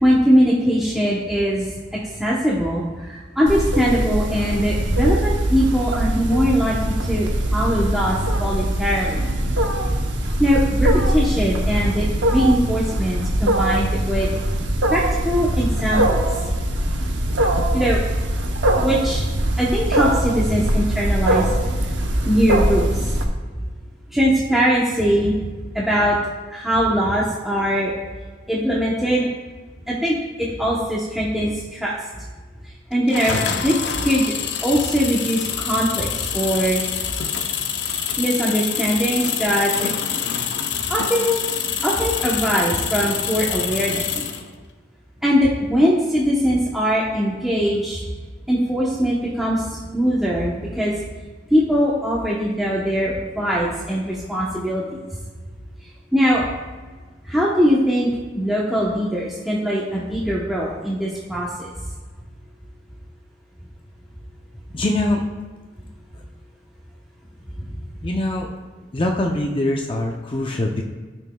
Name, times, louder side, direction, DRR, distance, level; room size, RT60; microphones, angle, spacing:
voice 1, 0.0-1.7 1.9-9.3 10.4-14.3 14.9-16.2 17.7-18.0 18.8-19.2 19.6-21.5 22.2-23.0 24.1-25.4 25.7-26.2 26.5-27.9 28.5-29.3 29.9-31.9 32.9-34.3 34.6-36.8 38.2-39.9 40.9-41.4 41.8-44.2 45.2-48.0 48.5-49.6 49.9-50.9 51.5-55.0 56.1-56.4 57.2-58.1 58.3-61.7 67.6-67.7, equal, ahead, -6 dB, 0.8 m, -21 dB
Wild animals, 3.5-23.2, right 1 dB, 90° right, 0.9 m, -22 dB
sound 1, 33.1-44.5, left 8 dB, 75° left, 0.6 m, -26 dB
voice 2, 64.7-65.2 68.0-68.5 68.9-70.8, left 1 dB, 30° left, 1 dB, 0.5 m, -23 dB
12.5 x 6.1 x 2.3 m, 1.4 s
head